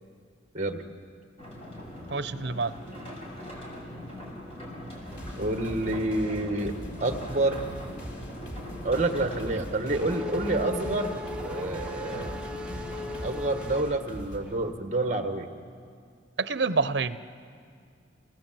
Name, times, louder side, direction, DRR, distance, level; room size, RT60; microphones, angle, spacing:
sound 1, 1.4-13.5, left 1 dB, 35° left, 5.5 m, -41 dB
voice 1, 2.1-2.7 16.4-17.2, right 4 dB, 75° right, 13 dB, 0.8 m, -27 dB
sound 2, 5.1-14.4, equal, 80° left, 3.7 m, -41 dB
voice 2, 5.4-6.7 7.0-7.7 8.8-12.4 13.2-15.5, right 2 dB, 40° right, 6 dB, 1.6 m, -28 dB
Race car auto racing / Accelerating revving vroom, 9.3-14.6, left 2 dB, 5° right, 0.8 m, -38 dB
28.0 x 18.5 x 7.6 m, 2.2 s
head